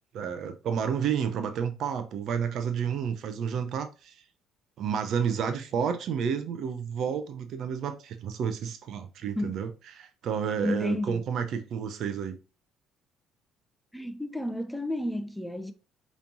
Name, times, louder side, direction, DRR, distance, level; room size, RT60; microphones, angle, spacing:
voice 1, 0.1-4.2 4.8-12.4, right 7 dB, 60° right, 0.6 m, -30 dB
voice 2, 10.6-11.2 13.9-15.7, left 1 dB, 5° left, 0.6 m, -31 dB
5.0 x 3.1 x 2.6 m
hypercardioid pair, 55°, 0 cm